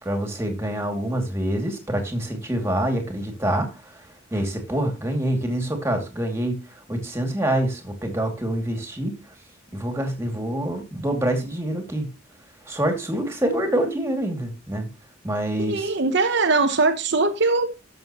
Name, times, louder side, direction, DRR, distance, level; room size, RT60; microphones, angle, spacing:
voice 1, 0.0-4.0 4.3-6.5 6.9-9.2 9.7-12.1 12.7-14.9 15.2-15.9, right 1 dB, 15° right, 2.3 m, -26 dB
voice 2, 15.6-17.7, right 3 dB, 55° right, 0.9 m, -21 dB
13.0 x 6.6 x 3.0 m
head